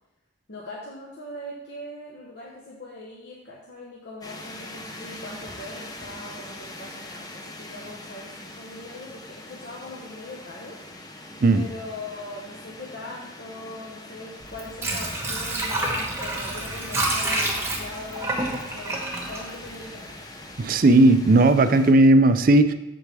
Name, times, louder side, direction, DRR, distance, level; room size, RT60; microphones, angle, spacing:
voice 1, 0.5-10.8 11.5-20.1, left 2 dB, 60° left, -4 dB, 1.0 m, -40 dB
sound 1, 4.2-21.9, left 1 dB, 20° left, 0.7 m, -42 dB
Water / Sink (filling or washing), 14.4-20.3 20.7-20.8, right 2 dB, 15° right, 1.1 m, -28 dB
voice 2, 20.6-22.7, right 2 dB, 45° right, 11 dB, 0.4 m, -16 dB
8.0 x 6.9 x 3.4 m, 1.0 s
head